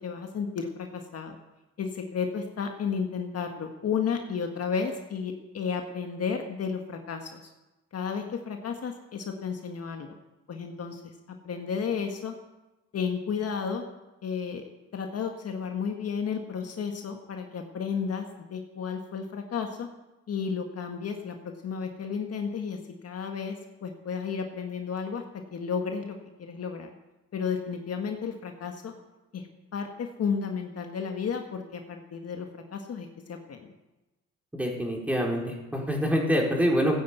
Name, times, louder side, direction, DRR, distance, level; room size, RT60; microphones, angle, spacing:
voice 1, 0.0-1.4 1.8-7.4 7.9-10.2 10.5-11.0 11.4-12.3 12.9-13.8 14.2-14.6 14.9-19.9 20.3-25.2 25.5-26.9 27.3-28.9 29.3-29.5 29.7-33.7, left 6 dB, 55° left, 4 dB, 1.6 m, -32 dB
voice 2, 34.5-37.0, equal, 5° right, -1 dB, 4.1 m, -26 dB
15.0 x 9.7 x 8.2 m, 1.0 s
cardioid pair, 90°, 30 cm